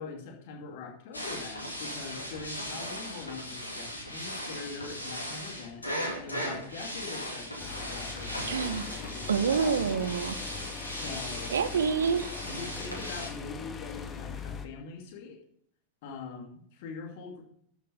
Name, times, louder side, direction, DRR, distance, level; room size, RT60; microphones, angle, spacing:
voice 1, 0.0-9.9 10.9-11.5 12.4-15.4 16.0-17.4, left 5 dB, 50° left, 1 dB, 2.6 m, -43 dB
sound 1, 1.1-13.3, equal, 80° left, 2.3 m, -38 dB
sound 2, 7.6-14.7, left 5 dB, 20° left, 1.0 m, -41 dB
voice 2, 8.5-8.8 9.3-10.4 11.5-12.3, right 6 dB, 65° right, 12 dB, 0.7 m, -27 dB
12.5 x 5.6 x 5.2 m, 0.66 s
figure-of-eight pair, 90°, 0 cm